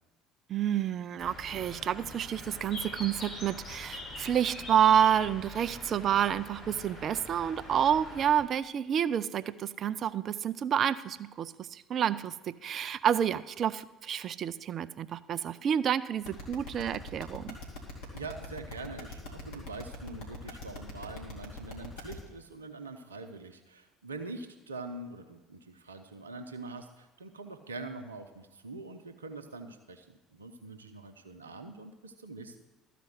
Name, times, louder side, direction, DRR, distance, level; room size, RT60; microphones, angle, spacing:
voice 1, 0.5-17.6, right 9 dB, 45° right, 15 dB, 0.4 m, -29 dB
Bird, 1.2-8.4, left 2 dB, 45° left, 4.0 m, -43 dB
sound 1, 16.2-22.1, left 2 dB, 70° left, 2.3 m, -42 dB
voice 2, 18.1-32.6, right 3 dB, 85° right, 7 dB, 0.7 m, -44 dB
13.0 x 5.1 x 7.8 m, 1.1 s
figure-of-eight pair, 60°, 0 cm